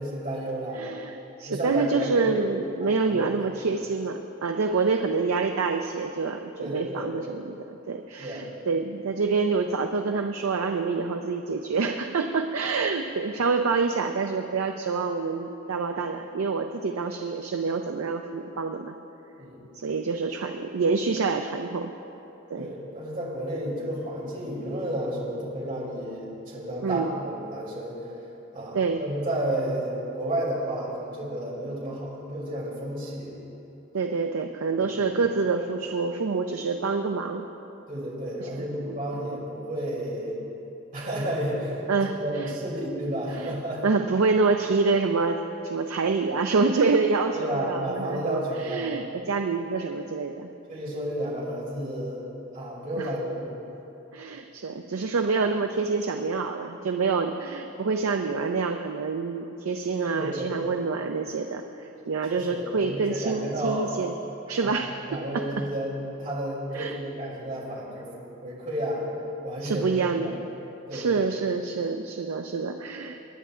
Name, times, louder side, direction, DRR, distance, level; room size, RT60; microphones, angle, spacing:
voice 1, 0.0-0.8 1.5-2.3 2.8-3.5 6.6-7.1 8.2-8.5 19.4-19.6 22.5-28.0 28.5-33.4 34.7-35.1 37.9-40.4 40.9-41.8 42.1-43.8 47.3-48.9 50.7-52.2 52.5-53.5 60.0-60.6 62.3-63.9 64.6-68.1 68.4-69.0 69.4-70.3 70.9-71.4, right 1 dB, 40° right, -7 dB, 3.0 m, -32 dB
voice 2, 0.7-18.9 19.7-21.9 22.5-22.7 26.8-27.1 28.7-29.0 33.9-37.4 38.4-38.9 41.9-42.5 43.3-43.5 43.8-50.5 53.0-53.1 54.1-64.1 64.5-65.5 66.7-67.0 69.6-70.3 70.9-73.2, right 4 dB, 85° right, 5 dB, 0.5 m, -27 dB
24.0 x 10.0 x 2.5 m, 3.0 s
head